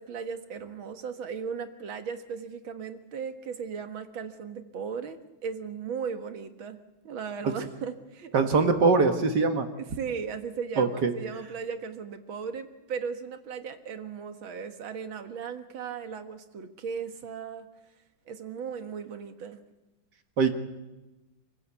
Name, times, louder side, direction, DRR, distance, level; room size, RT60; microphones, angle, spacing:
voice 1, 0.0-6.8 7.0-8.3 9.8-17.7 18.3-19.6, right 6 dB, 90° right, 8 dB, 2.3 m, -37 dB
voice 2, 8.3-9.7 10.8-11.1 20.4-20.5, right 4 dB, 60° right, 7 dB, 2.0 m, -22 dB
27.0 x 15.5 x 8.3 m, 1.1 s
omnidirectional pair, 2.1 m